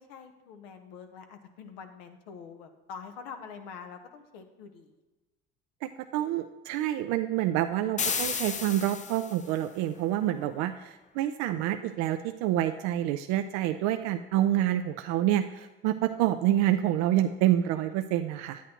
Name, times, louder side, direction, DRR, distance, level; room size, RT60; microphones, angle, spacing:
voice 1, 0.0-4.9 10.4-10.8, left 6 dB, 85° left, 7 dB, 0.9 m, -46 dB
voice 2, 5.8-18.6, right 12 dB, 70° right, 8 dB, 0.5 m, -27 dB
sound 1, 8.0-9.5, left 5 dB, 25° left, 0.5 m, -32 dB
9.7 x 8.4 x 2.9 m, 1.2 s
supercardioid pair, 75°, 29 cm